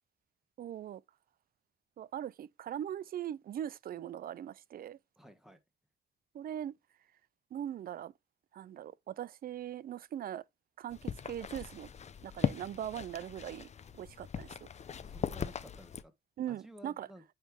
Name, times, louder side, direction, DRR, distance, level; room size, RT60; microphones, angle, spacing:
voice 1, 0.6-1.0 2.0-5.0 6.3-6.7 7.5-8.1 8.5-10.4 10.8-11.9 12.2-13.7 13.9-14.7 16.4-17.1, right 10 dB, 50° right, 0.4 m, -40 dB
voice 2, 5.2-5.6 15.0-16.1 16.5-17.2, equal, ahead, 1.2 m, -53 dB
sound 1, 10.9-16.0, left 7 dB, 35° left, 0.5 m, -39 dB
8.8 x 3.2 x 3.4 m
cardioid pair, 90°, 20 cm